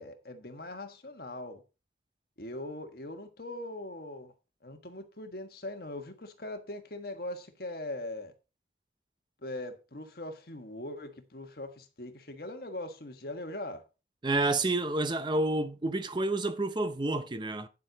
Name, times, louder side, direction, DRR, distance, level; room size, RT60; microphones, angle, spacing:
voice 1, 0.0-1.6 2.4-4.3 4.6-8.3 9.4-13.8, left 1 dB, 55° left, 1.5 m, -41 dB
voice 2, 14.2-17.7, right 2 dB, 25° right, 0.6 m, -29 dB
9.7 x 7.6 x 4.0 m
head